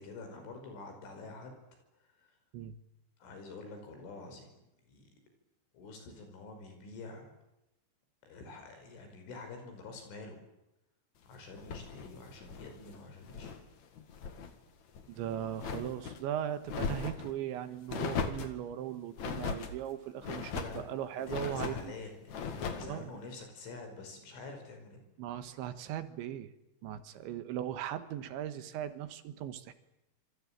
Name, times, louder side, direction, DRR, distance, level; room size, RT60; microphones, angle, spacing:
voice 1, 0.0-1.6 2.0-2.4 3.2-4.5 4.8-5.1 5.7-7.3 8.3-10.4 11.3-13.6 20.2-25.0, left 3 dB, 80° left, 6 dB, 7.8 m, -47 dB
sound 1, 11.6-13.6 14.0-14.5 14.9-16.2 16.6-17.3 17.9-18.6 19.2-19.7 20.2-20.8 21.3-21.9 22.3-22.9, left 6 dB, 50° left, 2.5 m, -38 dB
voice 2, 15.1-21.9 22.8-23.1 25.2-26.5 26.8-29.7, right 10 dB, 75° right, 10 dB, 3.6 m, -38 dB
27.0 x 23.5 x 8.9 m, 0.92 s
omnidirectional pair, 5.5 m